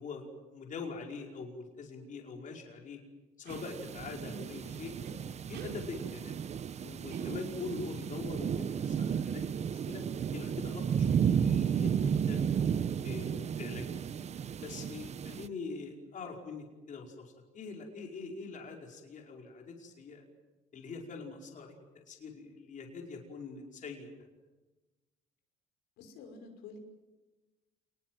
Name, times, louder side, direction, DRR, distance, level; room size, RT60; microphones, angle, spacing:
voice 1, 0.0-3.0 3.4-4.9 5.5-6.4 6.8-10.0 10.3-12.6 13.0-13.9 14.6-20.2 20.7-24.1, left 4 dB, 50° left, 1 dB, 5.1 m, -43 dB
sound 1, 3.4-3.7 5.0-5.2 5.5-5.8 7.1-7.7, right 7 dB, 85° right, 4.8 m, -47 dB
sound 2, 3.5-15.5, right 7 dB, 40° right, 0.8 m, -33 dB
voice 2, 26.0-26.8, left 4 dB, 85° left, 4 dB, 5.9 m, -49 dB
28.5 x 20.5 x 7.8 m, 1.2 s
cardioid pair, 110°, 17 cm